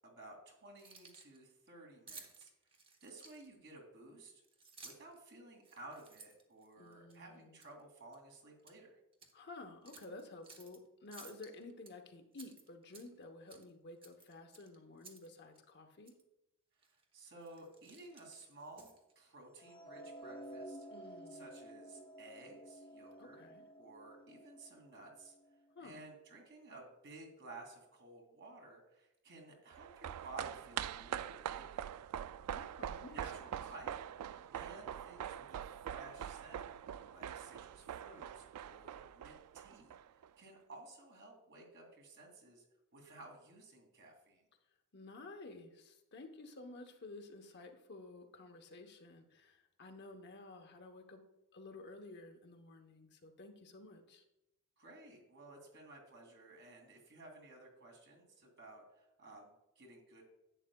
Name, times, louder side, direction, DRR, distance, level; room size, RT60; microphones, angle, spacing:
voice 1, 0.0-2.5 3.0-4.4 4.8-9.0 16.8-18.9 19.2-20.9 21.3-23.4 23.8-25.4 25.8-32.2 33.0-34.0 34.5-36.6 37.1-42.7 42.9-44.5 54.8-60.2, right 2 dB, 55° right, 1 dB, 2.5 m, -55 dB
Keys jangling, 0.7-1.4 2.1-3.7 4.4-5.2 5.6-7.2 7.6-7.8 8.1-8.8 9.1-9.3 9.8-10.8 11.1-11.9 12.3-13.2 13.5-13.7 14.0-15.3 15.5-15.6 16.0-16.2 16.8-17.0 17.4-19.1, right 4 dB, 25° right, 1.0 m, -57 dB
voice 2, 6.8-7.6 9.3-16.2 20.9-21.4 23.1-23.7 25.7-26.1 32.5-33.5 44.9-51.3 51.5-54.2, left 2 dB, 50° left, 4 dB, 0.9 m, -53 dB
sound 1, 19.6-25.8, right 1 dB, 20° left, 0.7 m, -52 dB
sound 2, 29.7-40.3 40.6-40.7, right 9 dB, 85° right, 0.3 m, -44 dB
11.0 x 8.3 x 2.3 m, 0.92 s
head